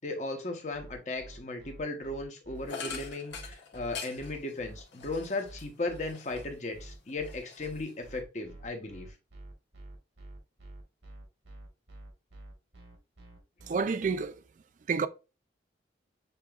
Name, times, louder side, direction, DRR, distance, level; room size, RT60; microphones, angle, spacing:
voice 1, 0.0-9.1, left 2 dB, 40° left, 0.9 m, -36 dB
sound 1, 0.7-14.2, right 2 dB, 80° right, 1.4 m, -48 dB
sound 2, 2.7-6.7 7.0-8.2, left 6 dB, 85° left, 1.2 m, -44 dB
voice 2, 13.7-14.4 14.9-15.1, right 5 dB, 45° right, 0.3 m, -29 dB
6.7 x 2.9 x 2.3 m
head